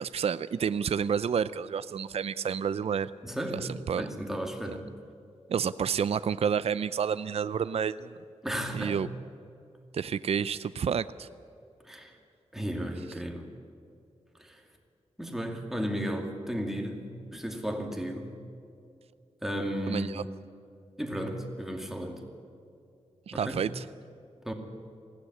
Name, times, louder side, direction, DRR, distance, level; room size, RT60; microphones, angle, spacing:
voice 1, 0.0-3.1 3.9-4.0 4.7-4.8 5.5-8.2 8.7-9.1 9.9-11.3 19.9-20.2 23.3-23.9, right 7 dB, 60° right, 14 dB, 0.5 m, -29 dB
voice 2, 3.2-4.9 8.4-9.1 11.8-12.2 12.5-13.5 14.4-14.6 15.2-18.4 19.4-20.3 21.0-22.2 23.3-23.6 24.4-24.5, equal, 5° right, 2 dB, 2.4 m, -34 dB
20.5 x 16.0 x 9.8 m, 2.5 s
wide cardioid pair, 140°, 12 cm